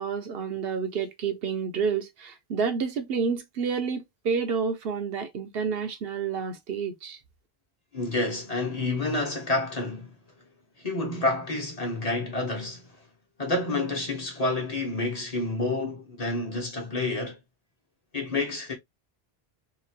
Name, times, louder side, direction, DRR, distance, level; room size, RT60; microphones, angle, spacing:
voice 1, 0.0-7.2, right 6 dB, 70° right, 0.8 m, -29 dB
voice 2, 7.9-10.1 10.8-12.8 13.4-17.4 18.1-18.7, left 2 dB, 40° left, 1.0 m, -29 dB
2.9 x 2.5 x 2.7 m
omnidirectional pair, 1.0 m